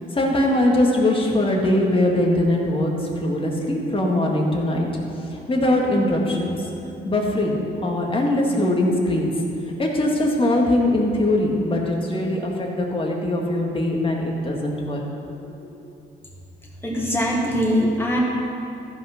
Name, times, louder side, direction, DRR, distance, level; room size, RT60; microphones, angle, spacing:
voice 1, 0.1-2.9 3.2-4.9 5.3-6.6 7.1-9.3 9.8-15.0, left 1 dB, 25° left, -1 dB, 1.9 m, -21 dB
voice 2, 16.8-18.2, equal, 10° left, -4 dB, 2.5 m, -22 dB
14.5 x 5.5 x 5.8 m, 2.8 s
cardioid pair, 90°, 20 cm